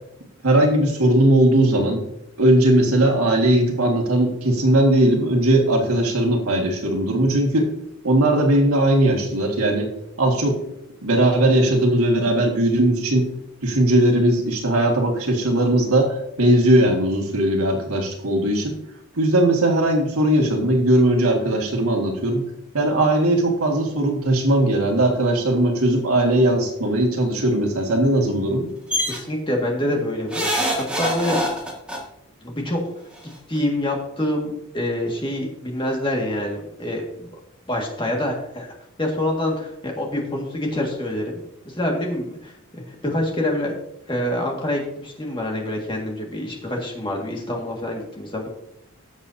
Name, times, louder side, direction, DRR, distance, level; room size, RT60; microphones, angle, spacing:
voice 1, 0.4-2.0 2.4-7.7 8.0-9.9 10.2-10.6 11.0-13.3 13.6-18.7 19.1-22.4 22.7-28.7, right 1 dB, 90° right, 1 dB, 2.1 m, -19 dB
sound 1, 28.9-29.2 30.3-32.0 33.2-33.3 33.6-33.7, equal, 5° right, 1.8 m, -24 dB
voice 2, 29.1-30.5 30.8-31.4 32.4-32.8 33.5-37.3 37.7-41.3 41.6-43.7 44.1-48.5, left 1 dB, 20° left, 0 dB, 1.9 m, -26 dB
16.5 x 6.7 x 2.8 m, 0.80 s
head